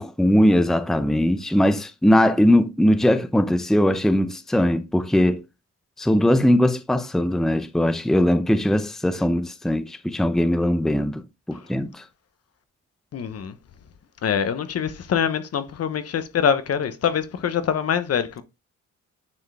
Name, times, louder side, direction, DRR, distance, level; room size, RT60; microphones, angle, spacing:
voice 1, 0.0-5.4 6.0-11.2 11.5-12.0, left 1 dB, ahead, 0.7 m, -20 dB
voice 2, 13.1-13.6 14.2-18.4, left 7 dB, 55° left, 1.2 m, -24 dB
9.7 x 4.5 x 3.5 m
cardioid pair, 90°, 30 cm